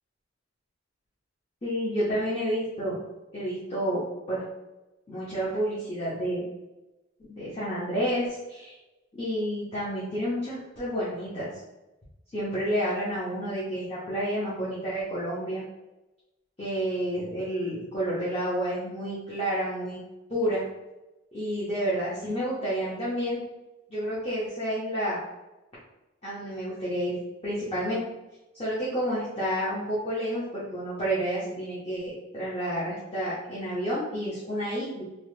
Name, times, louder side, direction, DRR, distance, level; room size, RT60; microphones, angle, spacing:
voice 1, 1.6-3.0 3.3-4.0 4.3-4.5 5.1-6.5 7.3-8.7 9.1-11.5 12.3-15.7 16.6-20.0 20.3-20.7 21.3-23.4 23.9-25.2 26.2-28.0 28.6-35.0, equal, 30° left, -9 dB, 0.7 m, -30 dB
2.9 x 2.1 x 3.1 m, 1.0 s
head